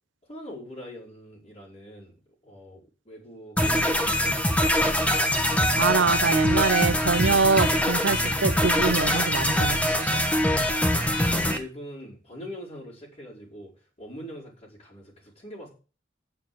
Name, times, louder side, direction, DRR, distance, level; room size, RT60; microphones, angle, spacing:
voice 1, 0.3-4.8 10.4-13.7 14.0-15.7, equal, 35° left, 4.9 m, -43 dB
sound 1, 3.6-11.6, equal, 5° left, 1.4 m, -23 dB
voice 2, 5.8-10.2, right 4 dB, 80° right, 0.7 m, -24 dB
9.2 x 7.1 x 7.7 m
head